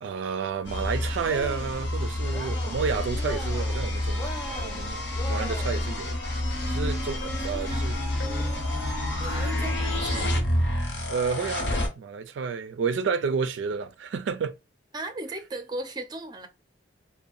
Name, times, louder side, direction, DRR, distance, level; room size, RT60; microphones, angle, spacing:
voice 1, 0.0-5.0 5.3-6.2 6.6-8.0 11.1-14.6, right 5 dB, 85° right, 0.3 m, -30 dB
sound 1, 0.7-11.9, left 1 dB, 80° left, 1.1 m, -28 dB
Cheering, 1.2-1.8 2.2-2.9 3.1-3.8 4.1-5.9, equal, 20° left, 0.6 m, -39 dB
sound 2, 1.4-1.8 2.3-2.8 3.6-4.0 4.6-6.0 7.2-7.9 8.2-8.6, left 2 dB, 55° left, 0.6 m, -47 dB
voice 2, 7.4-7.9 9.2-10.4 14.9-16.5, right 2 dB, 25° right, 0.4 m, -37 dB
2.6 x 2.1 x 2.4 m
head